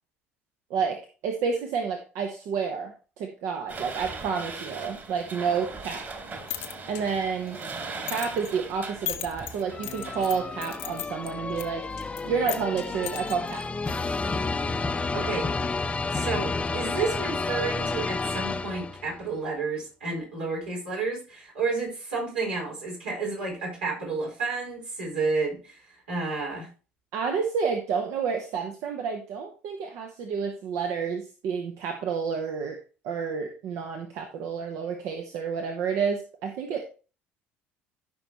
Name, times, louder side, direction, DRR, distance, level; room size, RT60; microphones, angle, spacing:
voice 1, 0.7-6.1 6.9-7.6 8.0-11.8 12.2-13.6 27.1-32.8 33.0-36.8, right 6 dB, 60° right, 4 dB, 1.2 m, -30 dB
sound 1, 3.7-11.0, right 4 dB, 40° right, 2.8 m, -40 dB
sound 2, 6.2-14.2, left 14 dB, 70° left, 0.9 m, -40 dB
sound 3, 9.7-19.2, left 3 dB, 20° left, 0.8 m, -31 dB
voice 2, 15.1-15.5 16.1-26.7, right 4 dB, 80° right, -4 dB, 5.0 m, -31 dB
13.5 x 5.7 x 3.0 m, 0.35 s
figure-of-eight pair, 60°, 6 cm